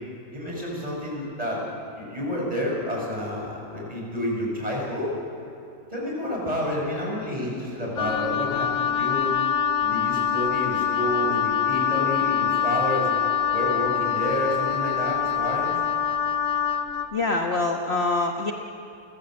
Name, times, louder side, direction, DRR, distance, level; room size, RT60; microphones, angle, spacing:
voice 1, 0.3-1.6 2.0-5.1 5.9-9.3 9.8-13.2 13.5-15.8, left 1 dB, 20° right, -3 dB, 7.1 m, -29 dB
Wind instrument woodwind instrument, 8.0-17.1, left 8 dB, 75° left, 1.4 m, -25 dB
voice 2, 17.1-18.5, left 3 dB, 40° left, 2 dB, 1.4 m, -24 dB
30.0 x 15.0 x 7.9 m, 2.9 s
omnidirectional pair, 1.9 m